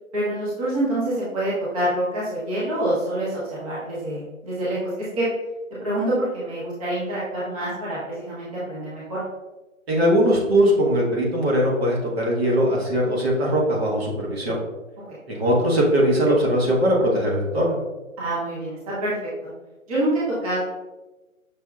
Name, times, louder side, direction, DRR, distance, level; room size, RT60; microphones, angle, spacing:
voice 1, 0.1-5.3 5.8-9.2 18.2-19.1 19.9-20.6, right 1 dB, 25° right, -8 dB, 1.0 m, -26 dB
voice 2, 9.9-14.6 15.3-17.8, equal, 50° right, -3 dB, 1.2 m, -20 dB
6.1 x 2.8 x 2.4 m, 1.1 s
hypercardioid pair, 160°, 41 cm